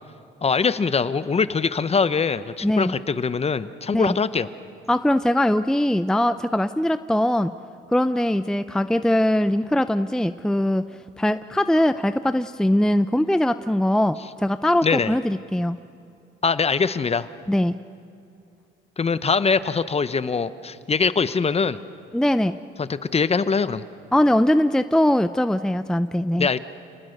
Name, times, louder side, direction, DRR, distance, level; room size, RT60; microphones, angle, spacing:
voice 1, 0.4-4.5 14.8-15.2 16.4-17.3 19.0-21.8 22.8-23.8 26.4-26.6, left 5 dB, 30° left, 14 dB, 0.9 m, -22 dB
voice 2, 2.6-2.9 3.9-4.2 4.9-7.5 7.9-10.8 11.2-15.8 17.5-17.8 22.1-22.6 24.1-26.5, left 1 dB, 5° left, 12 dB, 0.5 m, -21 dB
29.0 x 19.0 x 6.6 m, 2.7 s
cardioid pair, 90°, 20 cm